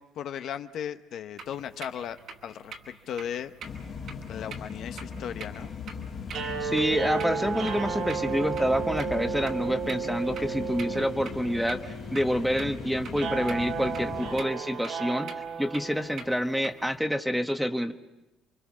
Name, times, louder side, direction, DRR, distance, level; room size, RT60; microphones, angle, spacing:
voice 1, 0.0-2.2 2.4-3.5 4.3-5.8, left 9 dB, 65° left, 9 dB, 0.8 m, -36 dB
sound 1, 1.4-17.0, right 5 dB, 60° right, 3.2 m, -47 dB
sound 2, 3.6-14.4, left 6 dB, 45° left, 2.3 m, -39 dB
sound 3, 6.3-16.5, right 6 dB, 75° right, 3.4 m, -34 dB
voice 2, 6.6-15.3 15.6-17.9, equal, ahead, 8 dB, 1.2 m, -28 dB
28.5 x 24.0 x 6.2 m, 1.0 s
cardioid pair, 105°, 0 cm